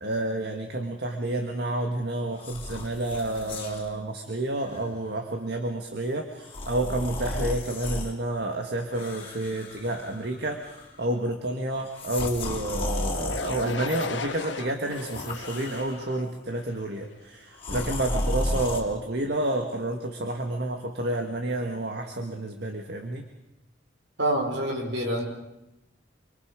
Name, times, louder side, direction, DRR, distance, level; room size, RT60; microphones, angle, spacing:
voice 1, 0.0-23.3, right 1 dB, 60° right, 4 dB, 1.8 m, -30 dB
sound 1, 2.4-3.9 4.6-4.8 6.4-8.1 8.9-10.4 10.6-11.1 11.9-14.1 14.8-16.2 17.6-18.8, left 1 dB, 30° left, 3.4 m, -33 dB
sound 2, 13.3-17.2, left 4 dB, 75° left, 1.4 m, -36 dB
voice 2, 24.2-25.3, right 1 dB, 75° right, 1 dB, 5.2 m, -26 dB
26.5 x 24.5 x 5.2 m, 0.90 s
head